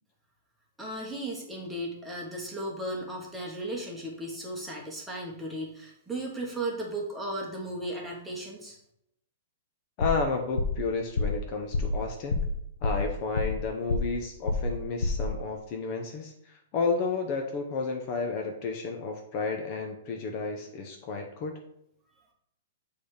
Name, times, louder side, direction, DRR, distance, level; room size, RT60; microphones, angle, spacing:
voice 1, 0.8-8.8, right 1 dB, 5° right, -2 dB, 1.4 m, -35 dB
sound 1, 10.0-10.3 10.6-10.8 11.2-11.4 11.7-12.0 12.3-12.6 12.8-13.6 13.9-14.2 14.5-14.8 15.0-15.3, left 2 dB, 85° left, 0.9 m, -28 dB
voice 2, 10.0-12.4 12.8-21.6, left 4 dB, 35° left, 3 dB, 0.8 m, -32 dB
6.7 x 3.4 x 5.1 m, 0.77 s
hypercardioid pair, 155°, 0 cm